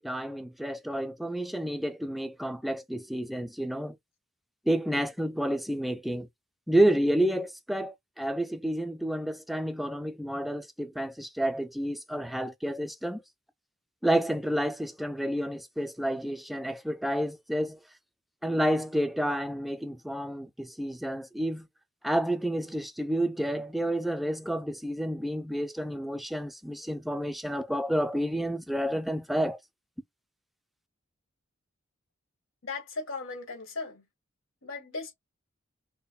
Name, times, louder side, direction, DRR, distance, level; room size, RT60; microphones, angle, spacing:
voice 1, 0.0-4.0 4.7-6.3 6.7-13.2 14.0-17.8 18.4-21.7 22.0-29.6, right 1 dB, ahead, 0.3 m, -30 dB
voice 2, 32.6-34.0 34.6-35.1, left 3 dB, 85° left, 1.7 m, -37 dB
5.4 x 2.2 x 2.3 m
head